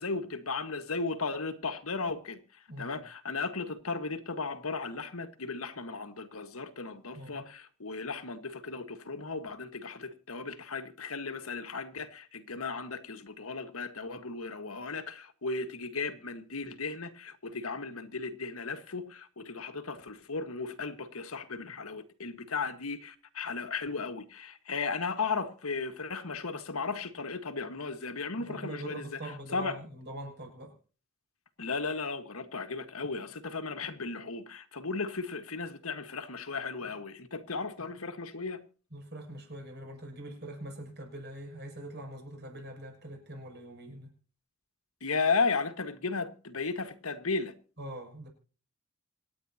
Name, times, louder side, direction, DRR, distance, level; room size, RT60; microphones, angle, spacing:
voice 1, 0.0-29.8 31.6-38.6 45.0-47.5, left 4 dB, 75° left, 1.7 m, -35 dB
voice 2, 2.7-3.0 7.1-7.4 28.4-30.7 38.9-44.1 47.8-48.3, right 1 dB, 50° right, 7.4 m, -43 dB
27.0 x 9.6 x 2.9 m
head